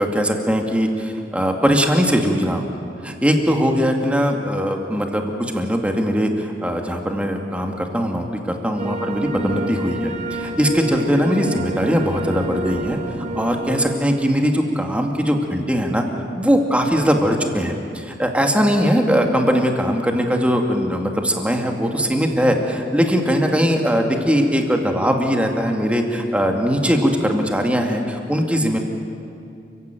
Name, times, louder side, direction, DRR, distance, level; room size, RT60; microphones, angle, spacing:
voice 1, 0.0-16.0 16.3-28.8, equal, 10° right, 2 dB, 2.4 m, -20 dB
sound 1, 8.8-14.0, right 2 dB, 45° right, 1.4 m, -29 dB
29.0 x 16.0 x 9.3 m, 2.6 s
head